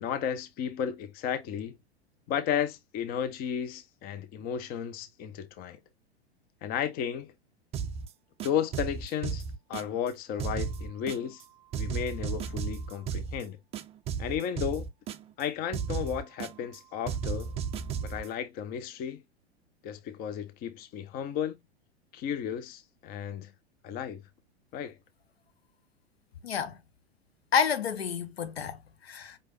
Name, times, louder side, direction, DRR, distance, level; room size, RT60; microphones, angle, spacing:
voice 1, 0.0-1.8 2.3-5.8 6.6-7.3 8.4-9.4 9.7-11.4 11.7-13.6 14.2-14.9 15.4-17.5 18.0-19.2 19.8-21.6 22.1-23.5 23.8-24.2 24.7-25.0, left 8 dB, 30° left, 0.7 m, -33 dB
sound 1, 7.7-8.1 8.4-10.1 10.4-11.4 11.7-13.4 13.7-15.4 15.7-16.8 17.1-18.3, right 6 dB, 20° right, 0.4 m, -34 dB
voice 2, 26.4-26.8 27.5-29.4, left 7 dB, 75° left, 0.9 m, -29 dB
5.3 x 3.3 x 2.5 m
figure-of-eight pair, 95°, 32 cm